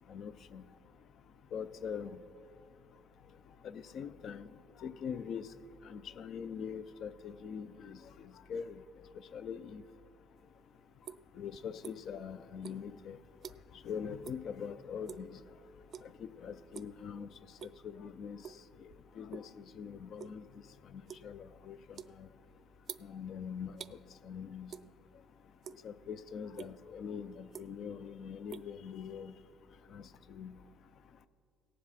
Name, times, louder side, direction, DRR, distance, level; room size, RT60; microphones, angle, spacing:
voice 1, 0.1-0.6 1.5-2.2 3.6-4.5 4.8-5.5 5.9-8.8 9.3-9.8 11.4-13.2 13.8-15.3 16.2-17.3 17.8-18.4 18.8-18.9 19.2-20.4 20.9-22.3 23.0-24.0 24.2-24.7 25.8-29.3 29.9-30.0 30.3-30.5, left 7 dB, 55° left, 13 dB, 0.5 m, -43 dB
sound 1, 10.4-12.2 12.6-13.9 14.2-14.5 14.8-15.3 15.9-16.2 16.6-17.0 17.4-17.9 18.4-19.5 19.8-24.0 24.7-25.2 25.5-26.1 26.5-26.7 27.3-28.0 28.2-29.4, right 8 dB, 50° right, 0.3 m, -49 dB
17.5 x 7.4 x 4.2 m, 2.4 s
cardioid pair, 105°, 0 cm